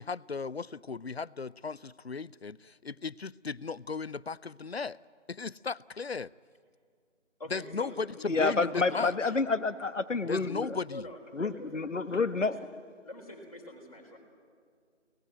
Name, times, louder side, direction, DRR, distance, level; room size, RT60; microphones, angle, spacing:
voice 1, 0.0-5.0 5.3-6.3 7.5-9.1 10.3-11.0, left 4 dB, 60° left, 0.5 m, -36 dB
voice 2, 7.4-8.3 8.7-9.1 10.9-12.7 13.0-14.2, left 1 dB, 30° left, 3.9 m, -45 dB
voice 3, 8.3-10.8 11.3-12.6, left 4 dB, 80° left, 1.2 m, -29 dB
24.5 x 18.5 x 9.0 m
figure-of-eight pair, 175°, 37 cm